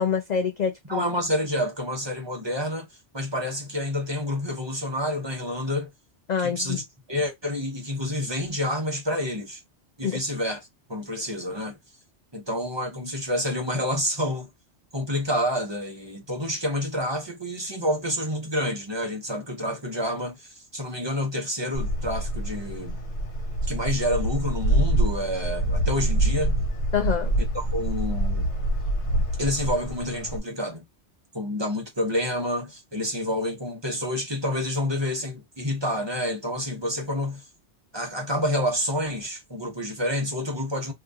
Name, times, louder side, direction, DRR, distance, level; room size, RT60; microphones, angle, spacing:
voice 1, 0.0-1.1 6.3-6.8 10.0-10.2 26.9-27.3, left 7 dB, 60° left, 0.4 m, -26 dB
voice 2, 0.9-2.9 3.1-5.9 6.4-9.6 10.0-11.7 12.3-14.5 14.9-23.0 23.6-26.6 27.5-28.5 29.4-30.8 31.3-37.4 37.9-40.9, left 1 dB, 25° right, 0.9 m, -28 dB
sound 1, 21.7-30.4, right 1 dB, 80° left, 1.5 m, -26 dB
2.8 x 2.6 x 3.5 m
omnidirectional pair, 1.2 m